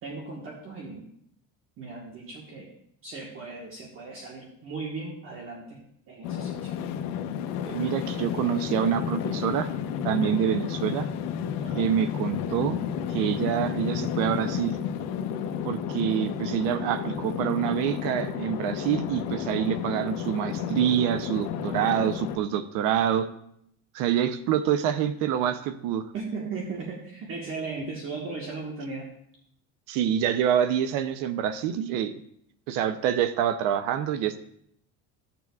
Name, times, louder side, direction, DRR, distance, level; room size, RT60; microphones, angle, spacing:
voice 1, 0.0-1.1 1.8-2.7 3.0-6.7 11.6-11.9 26.1-29.1, right 4 dB, 40° right, -2 dB, 1.4 m, -37 dB
sound 1, 6.2-22.4, left 8 dB, 85° left, 0.8 m, -31 dB
voice 2, 7.7-9.7 10.0-11.1 11.8-12.8 13.1-14.8 15.6-23.3 23.9-26.1 29.9-32.1 32.7-34.4, right 9 dB, 85° right, 11 dB, 0.7 m, -26 dB
14.5 x 6.9 x 2.3 m, 0.72 s
cardioid pair, 155°, 32 cm